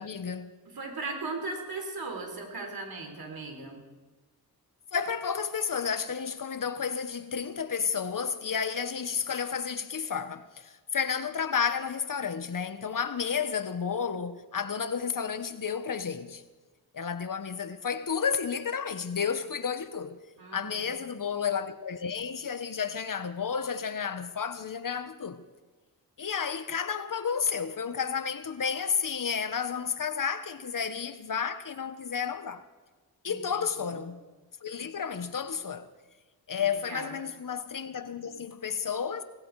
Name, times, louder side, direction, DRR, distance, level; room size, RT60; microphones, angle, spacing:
voice 1, 0.0-0.5 4.9-16.4 16.9-20.2 20.5-25.4 26.2-32.6 33.2-34.3 34.6-35.9 36.5-39.2, left 6 dB, 55° left, 1.3 m, -31 dB
voice 2, 0.7-3.8 20.4-20.9 33.2-34.0 36.6-37.2, right 3 dB, 65° right, 3.9 m, -38 dB
18.0 x 16.5 x 4.9 m
cardioid pair, 55°, 38 cm